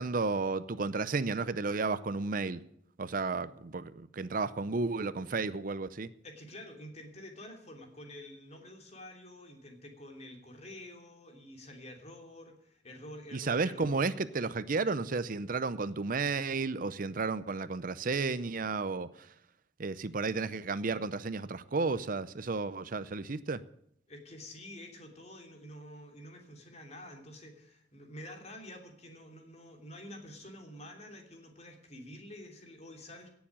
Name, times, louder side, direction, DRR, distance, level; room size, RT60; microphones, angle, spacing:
voice 1, 0.0-2.6 3.0-6.1 13.3-19.1 19.8-23.6, right 4 dB, 50° right, 0.6 m, -32 dB
voice 2, 6.2-13.9 24.1-33.4, left 1 dB, 40° left, 3.0 m, -48 dB
17.5 x 7.2 x 8.7 m
head